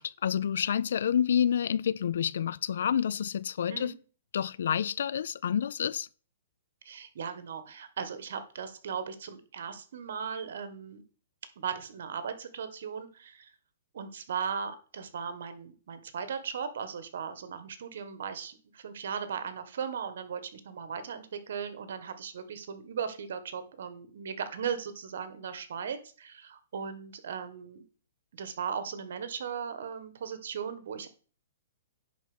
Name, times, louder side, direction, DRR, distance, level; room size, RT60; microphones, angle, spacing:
voice 1, 0.0-3.9 4.3-6.1, left 8 dB, 70° left, 0.4 m, -28 dB
voice 2, 6.8-11.0 11.6-13.5 13.9-27.8 28.3-31.1, right 7 dB, 65° right, 1.5 m, -37 dB
10.0 x 4.4 x 6.2 m
hypercardioid pair, 155°, 0 cm